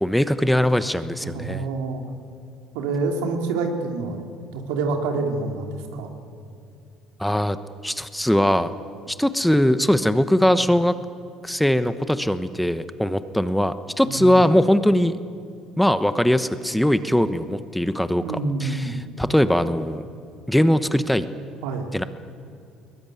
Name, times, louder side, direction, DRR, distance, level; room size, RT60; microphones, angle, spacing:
voice 1, 0.0-1.6 7.2-7.6 7.8-8.7 9.1-10.9 11.4-15.1 15.8-20.0 20.5-21.2 21.9-22.0, equal, 5° left, 12 dB, 1.1 m, -21 dB
voice 2, 1.2-2.0 2.7-4.2 4.5-6.1 14.0-14.4 18.2-19.0 21.6-21.9, right 3 dB, 90° right, 3 dB, 3.1 m, -27 dB
22.5 x 19.5 x 9.4 m, 2.5 s
supercardioid pair, 90°, 0 cm